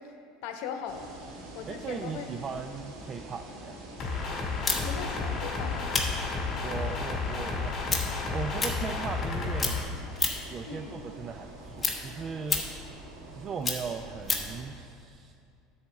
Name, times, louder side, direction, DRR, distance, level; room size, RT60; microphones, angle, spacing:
voice 1, 0.4-1.1 1.5-2.3 4.8-6.0 10.7-11.0, left 7 dB, 70° left, 6 dB, 0.8 m, -39 dB
sound 1, 0.9-14.6, right 2 dB, 70° right, 1.8 m, -45 dB
voice 2, 1.7-3.8 6.6-9.8 10.5-12.7 13.3-15.3, right 5 dB, 35° right, 6 dB, 0.3 m, -38 dB
sound 2, 4.0-9.8, left 4 dB, 40° left, 1.9 m, -32 dB
sound 3, 4.6-9.3 9.6-10.6 11.0-14.6, left 4 dB, 15° left, 1.2 m, -32 dB
10.0 x 4.2 x 7.1 m, 2.4 s
supercardioid pair, 120°, 0 cm